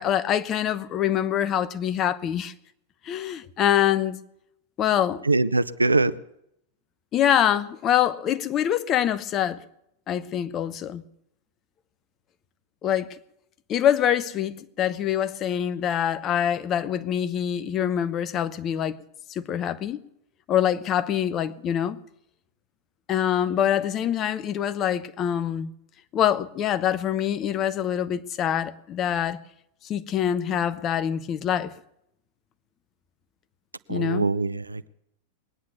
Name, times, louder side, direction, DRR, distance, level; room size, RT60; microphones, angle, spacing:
voice 1, 0.0-2.5 3.0-4.2 4.8-5.3 7.1-9.6 10.1-11.0 12.8-13.2 13.7-19.0 19.3-20.0 20.5-22.0 23.1-25.7 26.1-29.4 29.8-31.7 33.9-34.3, left 10 dB, 30° left, 0.9 m, -25 dB
voice 2, 5.3-6.1 33.9-34.9, right 3 dB, 80° right, 0.5 m, -23 dB
21.5 x 9.6 x 7.0 m
figure-of-eight pair, 90°, 0 cm